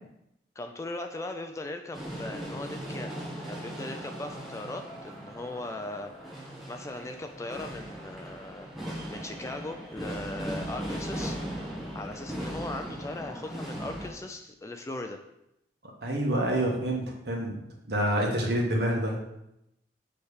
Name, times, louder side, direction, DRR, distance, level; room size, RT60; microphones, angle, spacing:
voice 1, 0.6-3.1 3.5-15.2, left 2 dB, 15° left, 5 dB, 0.3 m, -39 dB
sound 1, 1.9-14.1, equal, ahead, 1.1 m, -38 dB
voice 2, 16.0-17.6 17.9-19.2, right 1 dB, 60° right, -1 dB, 1.4 m, -27 dB
7.0 x 3.3 x 4.9 m, 0.84 s
head